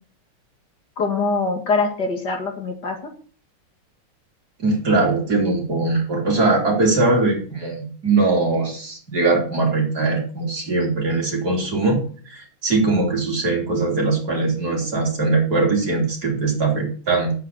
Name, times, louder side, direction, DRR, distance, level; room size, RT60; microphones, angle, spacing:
voice 1, 1.0-3.0, left 3 dB, 50° left, 1 dB, 2.6 m, -23 dB
voice 2, 4.6-12.0 12.3-17.3, right 3 dB, 45° right, 0 dB, 3.9 m, -21 dB
9.6 x 8.3 x 7.0 m, 0.43 s
omnidirectional pair, 2.3 m